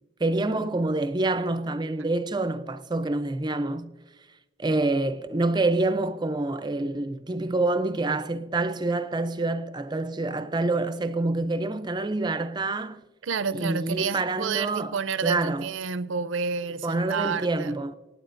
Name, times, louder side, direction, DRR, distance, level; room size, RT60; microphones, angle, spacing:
voice 1, 0.2-3.9 4.6-13.0 13.5-15.7 16.8-17.9, right 2 dB, 20° right, 0.5 m, -27 dB
voice 2, 13.2-17.8, right 5 dB, 75° right, 0.5 m, -29 dB
24.5 x 9.4 x 2.5 m
head